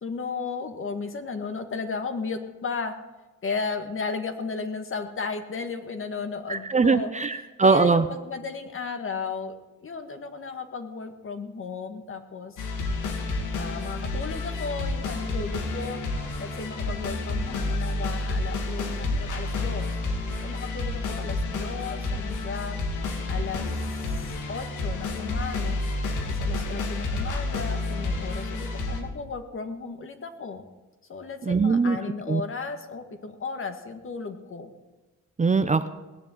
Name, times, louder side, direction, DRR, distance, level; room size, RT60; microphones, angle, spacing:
voice 1, 0.0-3.0 3.4-7.1 7.6-9.5 9.8-12.6 13.6-16.0 16.4-20.0 20.4-22.8 23.3-25.8 26.2-30.7 31.1-34.7, left 4 dB, 45° left, 7 dB, 1.9 m, -34 dB
voice 2, 6.5-8.0 31.4-32.0 32.3-32.4 35.4-35.9, right 4 dB, 25° right, 10 dB, 0.8 m, -21 dB
sound 1, 12.6-29.0, left 2 dB, 85° left, 2.5 m, -30 dB
18.0 x 7.3 x 9.2 m, 1.1 s
cardioid pair, 90°, 30 cm